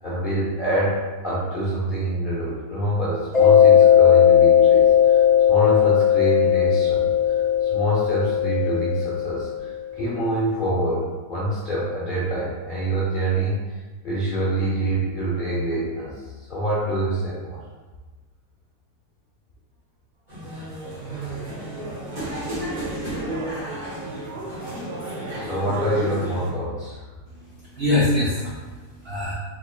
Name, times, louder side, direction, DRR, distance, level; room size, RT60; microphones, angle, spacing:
voice 1, 0.0-13.8 14.0-17.6 21.0-21.3 21.5-21.8 25.3-27.0, right 1 dB, 50° left, -8 dB, 0.6 m, -26 dB
Mallet percussion, 3.3-9.7, left 9 dB, 30° left, 1.2 m, -17 dB
sound 1, 20.3-26.5, right 1 dB, 30° right, 1.3 m, -31 dB
voice 2, 27.3-29.3, left 2 dB, 55° right, -8 dB, 0.7 m, -24 dB
3.6 x 3.2 x 2.4 m, 1.3 s
omnidirectional pair, 1.7 m